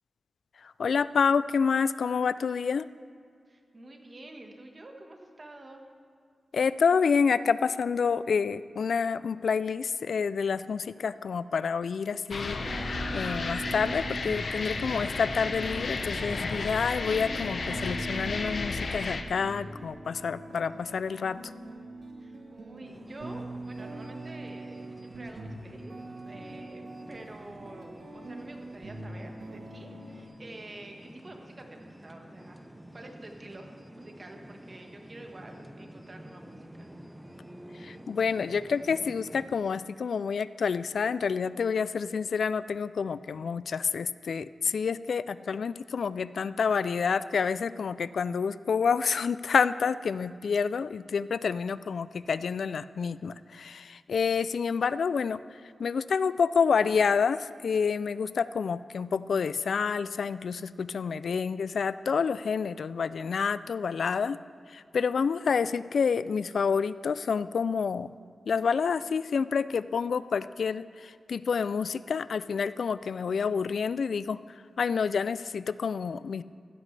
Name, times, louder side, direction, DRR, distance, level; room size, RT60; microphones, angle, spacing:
voice 1, 0.6-2.9 6.5-21.4 37.8-55.4 55.8-64.4 64.7-68.1 68.5-74.4 74.8-76.4, left 6 dB, 75° left, 16 dB, 0.3 m, -28 dB
voice 2, 3.5-5.8 22.2-26.0 26.2-32.6 32.9-36.9, right 2 dB, 35° right, 3 dB, 1.4 m, -48 dB
sound 1, 12.3-19.2, left 3 dB, 55° left, 0.8 m, -33 dB
sound 2, 12.6-30.2, right 2 dB, 80° right, 1.3 m, -42 dB
sound 3, 22.8-39.6, equal, 10° right, 0.7 m, -49 dB
15.0 x 12.5 x 3.3 m, 2.3 s
wide cardioid pair, 120°, 0 cm